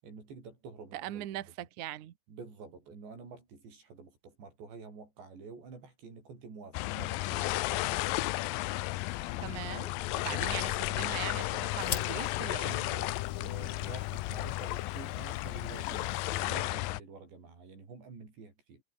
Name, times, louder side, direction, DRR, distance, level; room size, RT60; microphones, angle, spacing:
voice 1, 0.0-1.3 2.3-8.5 10.3-10.7 12.6-18.8, right 4 dB, 80° right, 9.8 m, -49 dB
voice 2, 0.9-2.1 9.4-12.7, right 13 dB, 60° right, 2.2 m, -40 dB
sound 1, 6.7-17.0, left 18 dB, 85° left, 2.0 m, -33 dB
sound 2, 8.7-16.4, left 7 dB, 70° left, 1.0 m, -46 dB
omnidirectional pair, 5.0 m